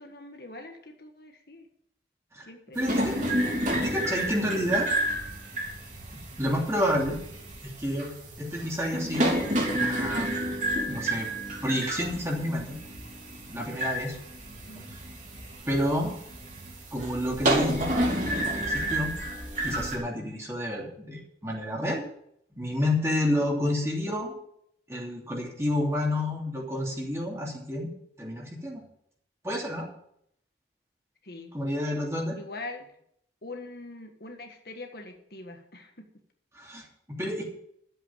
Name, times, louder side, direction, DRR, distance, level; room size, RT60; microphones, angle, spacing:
voice 1, 0.0-1.7 2.4-3.4 14.5-14.8 31.2-31.5 32.3-32.9 33.4-36.0, left 2 dB, 60° left, 4 dB, 1.5 m, -43 dB
voice 2, 2.7-3.1 3.8-4.9 6.1-7.2 7.6-8.1 8.4-10.4 10.9-11.3 11.6-12.8 13.5-14.2 15.7-16.1 16.9-19.1 19.6-22.0 22.6-24.4 24.9-27.9 28.2-28.8 29.4-29.9 31.5-32.4 36.5-37.5, left 1 dB, 15° right, -2 dB, 2.9 m, -29 dB
sound 1, 2.8-20.0, right 1 dB, 45° right, 3.3 m, -30 dB
12.0 x 8.0 x 7.3 m, 0.72 s
head